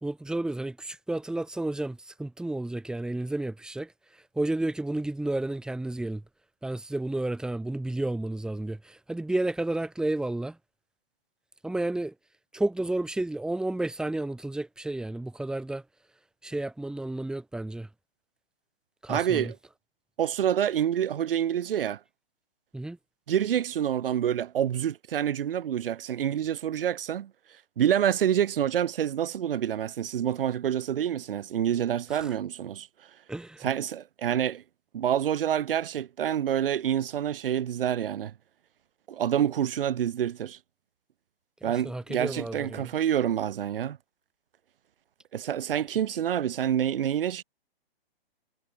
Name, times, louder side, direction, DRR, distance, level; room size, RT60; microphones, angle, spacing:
voice 1, 0.0-6.2 6.6-10.6 11.6-12.1 12.5-15.8 16.4-17.9 19.0-19.5 22.7-23.0 32.1-32.3 33.3-33.7 41.6-42.9, right 2 dB, ahead, 2.2 m, -31 dB
voice 2, 19.1-19.6 20.2-22.0 23.3-27.3 27.8-32.9 33.6-34.6 34.9-38.3 39.1-40.6 41.6-44.0 45.3-47.4, right 10 dB, 65° right, 2.3 m, -27 dB
hypercardioid pair, 145°, 30 cm